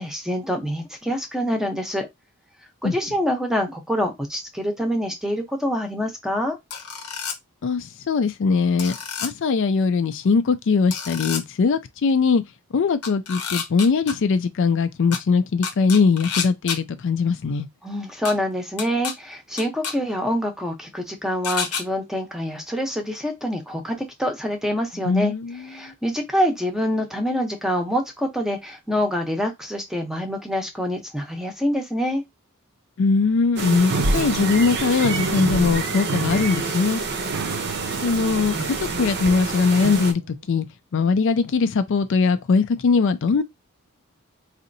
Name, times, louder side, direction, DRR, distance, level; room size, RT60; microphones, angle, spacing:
voice 1, 0.0-2.1 2.8-6.6 17.8-25.3 25.6-32.2, equal, ahead, 0.7 m, -26 dB
sound 1, 6.7-7.4 8.8-9.3 10.9-11.4 13.0-14.1 15.1-15.2 15.6-16.8 18.3-18.4 18.8-19.1 19.6-19.9 21.4-21.8, left 6 dB, 90° left, 0.9 m, -29 dB
voice 2, 7.6-9.0 9.2-12.4 12.7-17.7 25.1-25.5 25.8-25.9 33.0-37.0 38.0-40.7 40.9-43.4, left 4 dB, 55° left, 0.4 m, -21 dB
sound 2, 33.6-40.1, right 3 dB, 50° right, 0.7 m, -27 dB
sound 3, 33.9-40.4, right 6 dB, 85° right, 0.4 m, -32 dB
4.1 x 2.7 x 2.6 m
head